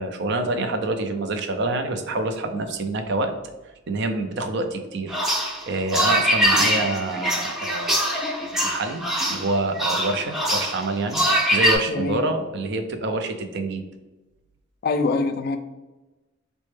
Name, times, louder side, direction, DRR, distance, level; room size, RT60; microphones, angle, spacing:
voice 1, 0.0-3.3 3.9-5.2 5.7-9.0 9.3-13.8, right 2 dB, 60° right, 6 dB, 0.5 m, -27 dB
sound 1, 5.1-11.8, equal, ahead, 0.5 m, -23 dB
voice 2, 11.9-12.2 14.8-15.6, left 3 dB, 50° left, 8 dB, 0.4 m, -24 dB
4.1 x 2.1 x 3.2 m, 1.1 s
head